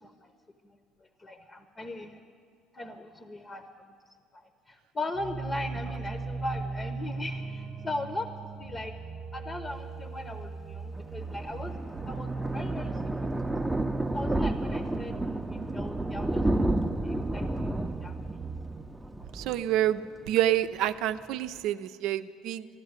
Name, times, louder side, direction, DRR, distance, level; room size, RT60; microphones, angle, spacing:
voice 1, 0.6-2.2 2.7-3.6 4.3-8.3 8.6-9.0 9.3-13.5 14.1-16.7 17.0-17.7 18.0-18.4, left 2 dB, 25° left, 8 dB, 0.9 m, -39 dB
sound 1, 5.1-18.8, right 4 dB, 35° right, 1.1 m, -38 dB
Thunder, 10.9-20.3 20.7-20.9 21.2-21.3 21.5-21.6, right 1 dB, 10° right, 0.7 m, -31 dB
voice 2, 19.3-22.7, right 12 dB, 70° right, 11 dB, 0.5 m, -28 dB
13.0 x 11.5 x 9.6 m, 2.2 s
supercardioid pair, 90°, 0 cm